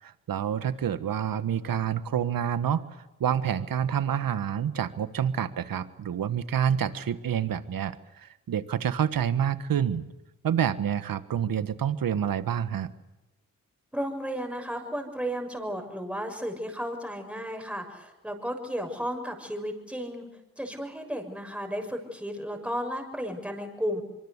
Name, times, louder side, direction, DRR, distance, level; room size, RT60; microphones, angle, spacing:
voice 1, 0.0-2.8 3.2-10.0 10.4-12.9, right 9 dB, 75° right, 13 dB, 1.5 m, -28 dB
voice 2, 13.9-20.2 20.6-24.0, equal, 5° right, 3 dB, 6.6 m, -33 dB
25.0 x 24.0 x 8.2 m, 0.99 s
cardioid pair, 65°, 34 cm